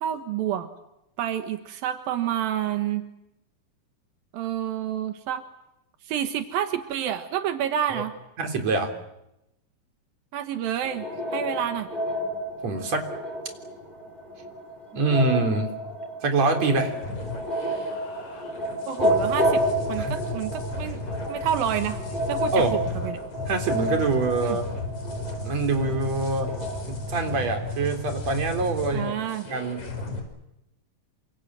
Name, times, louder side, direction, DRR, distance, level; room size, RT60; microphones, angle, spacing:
voice 1, 0.0-0.7 1.2-3.0 4.3-5.4 6.0-8.1 10.3-11.1 11.3-11.9 18.9-21.0 21.3-22.0 22.3-23.2 24.4-24.6 28.9-29.5, right 10 dB, 85° right, 7 dB, 3.2 m, -29 dB
voice 2, 8.4-8.9 12.6-13.1 14.9-15.7 16.2-16.9 20.0-20.2 22.5-22.8 23.5-24.6 25.4-26.5 26.9-29.1 29.5-29.8, right 3 dB, 50° right, 4 dB, 4.8 m, -25 dB
sound 1, 10.8-27.5, equal, 15° left, 4.1 m, -30 dB
sound 2, 16.9-30.2, left 2 dB, 55° left, 6.3 m, -34 dB
28.0 x 26.5 x 7.8 m, 0.87 s
omnidirectional pair, 4.0 m